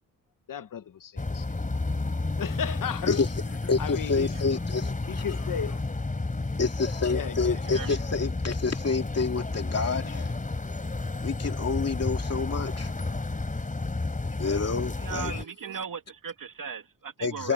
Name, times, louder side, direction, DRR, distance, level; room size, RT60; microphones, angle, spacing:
voice 1, 0.5-1.5 2.4-3.2 3.8-4.3 5.1-5.8 7.1-7.6, left 8 dB, 70° left, 1.0 m, -34 dB
sound 1, 1.2-15.4, left 3 dB, 25° left, 3.9 m, -31 dB
voice 2, 3.6-5.2 6.6-10.3 11.2-12.9 14.4-15.4 17.2-17.5, left 4 dB, 45° left, 2.7 m, -28 dB
voice 3, 7.6-8.0 15.0-17.5, right 7 dB, 70° right, 2.6 m, -37 dB
wide cardioid pair, 140°, 34 cm